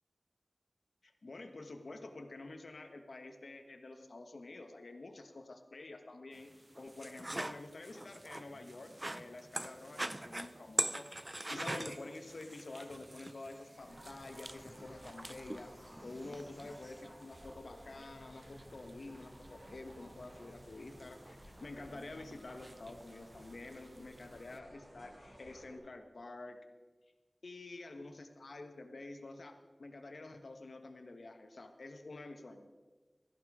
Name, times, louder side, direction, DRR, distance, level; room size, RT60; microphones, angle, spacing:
voice 1, 1.0-15.7 16.0-26.6 27.4-32.7, left 2 dB, 80° left, 6 dB, 1.2 m, -49 dB
sound 1, 6.3-24.6, right 1 dB, 30° right, 0.5 m, -45 dB
sound 2, 11.6-17.0, equal, 5° left, 1.7 m, -60 dB
sound 3, 13.7-25.8, equal, 60° right, 5.5 m, -56 dB
14.5 x 11.0 x 4.9 m, 1.3 s
wide cardioid pair, 65°, 0 cm